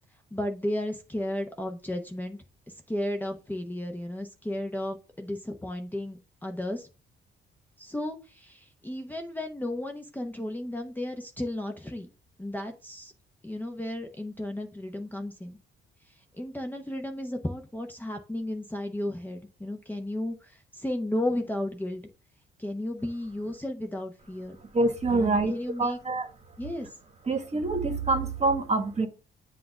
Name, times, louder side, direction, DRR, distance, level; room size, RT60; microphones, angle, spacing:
voice 1, 0.3-2.4 2.9-6.9 7.8-12.1 12.4-13.1 13.4-15.6 16.4-22.0 22.6-24.6 25.1-26.0 26.6-26.9, left 1 dB, 10° left, 0.8 m, -34 dB
voice 2, 24.7-25.5 25.8-26.3 27.3-29.1, right 3 dB, 35° right, 1.3 m, -26 dB
7.6 x 2.5 x 5.9 m
cardioid pair, 90°, 20 cm